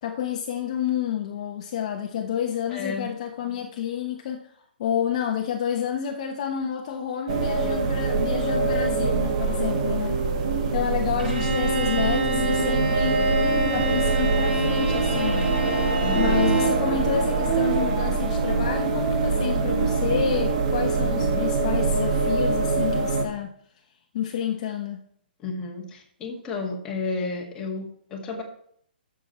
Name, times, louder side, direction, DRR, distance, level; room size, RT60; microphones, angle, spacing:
voice 1, 0.0-4.5 4.8-10.2 10.7-13.2 13.7-15.6 16.2-23.6 24.1-25.1, left 8 dB, 40° left, 3 dB, 1.0 m, -29 dB
voice 2, 2.7-3.1 8.8-9.5 16.0-16.5 21.0-21.5 25.4-28.4, left 4 dB, 15° left, -1 dB, 2.0 m, -33 dB
sound 1, 7.3-23.2, right 4 dB, 35° right, 1.7 m, -24 dB
Bowed string instrument, 11.2-16.9, equal, 70° right, 4.3 m, -28 dB
12.5 x 7.0 x 4.4 m, 0.63 s
hypercardioid pair, 170°, 5 cm